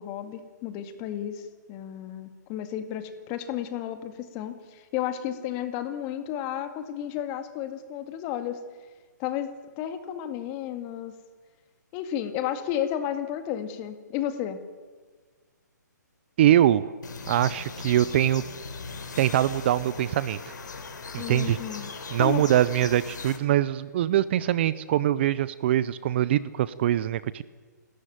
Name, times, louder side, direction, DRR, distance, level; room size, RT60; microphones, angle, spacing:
voice 1, 0.0-8.6 9.2-9.5 9.8-11.1 11.9-14.6 21.2-21.9 22.2-22.4, left 10 dB, 25° left, 9 dB, 2.0 m, -32 dB
voice 2, 16.4-16.9 17.3-18.4 19.2-20.5 21.1-21.6 22.1-27.4, right 12 dB, 35° right, 18 dB, 0.6 m, -23 dB
sound 1, 17.0-23.4, left 4 dB, 75° left, 3.7 m, -39 dB
28.0 x 13.0 x 9.3 m, 1.4 s
hypercardioid pair, 155°, 10 cm